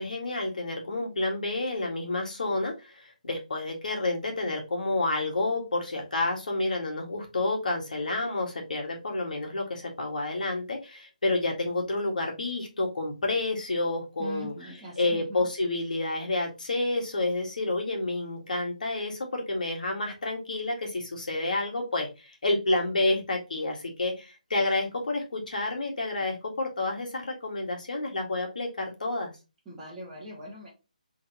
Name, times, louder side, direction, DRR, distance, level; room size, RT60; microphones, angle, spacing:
voice 1, 0.0-14.5 15.0-29.3, left 2 dB, 70° left, 1 dB, 1.7 m, -29 dB
voice 2, 14.2-15.5 29.6-30.7, equal, 5° right, -12 dB, 1.5 m, -40 dB
3.7 x 3.6 x 2.9 m, 0.27 s
hypercardioid pair, 165°, 5 cm